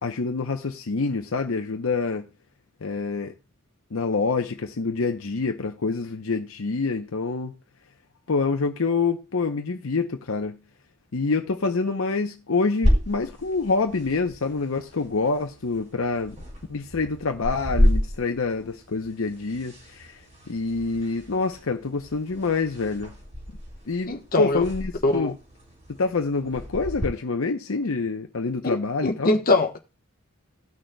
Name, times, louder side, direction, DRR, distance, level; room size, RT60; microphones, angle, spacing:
voice 1, 0.0-2.2 2.8-3.3 3.9-7.5 8.3-10.6 11.1-16.4 16.7-20.1 20.5-23.1 23.9-25.3 26.0-29.4, left 4 dB, 70° left, 0.7 m, -26 dB
sound 1, 12.8-27.1, equal, 35° right, 4.4 m, -30 dB
voice 2, 24.0-24.6 25.0-25.3 28.6-28.8 29.0-29.8, left 2 dB, 40° left, 1.1 m, -22 dB
18.0 x 6.3 x 2.2 m
head